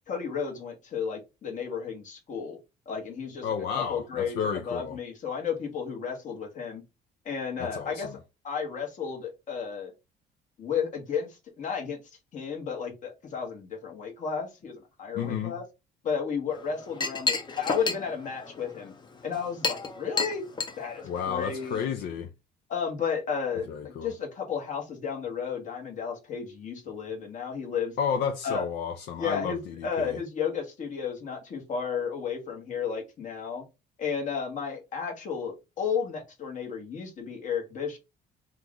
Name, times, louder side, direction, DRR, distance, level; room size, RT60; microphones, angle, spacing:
voice 1, 0.1-2.6 2.8-3.4 3.7-6.8 7.2-8.1 8.4-9.9 10.6-12.0 12.3-15.6 16.0-18.9 19.2-20.4 20.8-22.1 22.7-27.9 28.4-28.6 29.2-33.6 34.0-38.0, left 6 dB, 50° left, 1.4 m, -33 dB
voice 2, 3.4-5.0 7.6-8.2 15.1-15.5 21.0-22.3 23.7-24.1 28.0-30.2, left 7 dB, 75° left, 0.6 m, -31 dB
Chink clink, 16.5-21.9, left 4 dB, 25° left, 0.7 m, -33 dB
3.0 x 2.4 x 3.7 m
cardioid pair, 110°, 17 cm